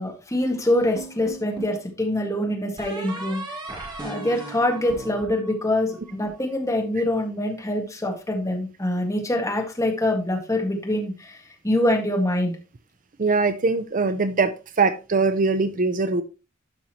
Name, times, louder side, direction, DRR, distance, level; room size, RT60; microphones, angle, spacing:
voice 1, 0.0-3.4 4.0-11.4 11.6-12.5, left 1 dB, 15° left, 1.8 m, -24 dB
sound 1, 0.9-1.8 2.8-6.1, right 2 dB, 20° right, 2.1 m, -37 dB
voice 2, 13.2-16.2, right 4 dB, 40° right, 0.6 m, -22 dB
12.0 x 5.6 x 3.0 m
head